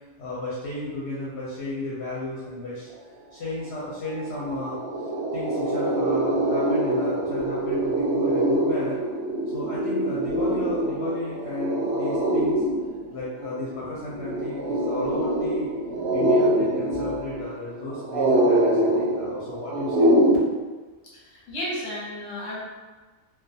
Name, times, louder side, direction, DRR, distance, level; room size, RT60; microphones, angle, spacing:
voice 1, 0.2-2.9 3.3-9.0 9.5-12.6 13.1-15.7 16.1-20.2, left 2 dB, 65° left, -7 dB, 0.7 m, -34 dB
sound 1, 3.8-3.9 4.2-20.4, right 1 dB, 60° right, 0.7 m, -24 dB
voice 2, 21.1-22.6, equal, 30° left, -7 dB, 0.7 m, -33 dB
2.3 x 2.2 x 2.6 m, 1.3 s
omnidirectional pair, 1.4 m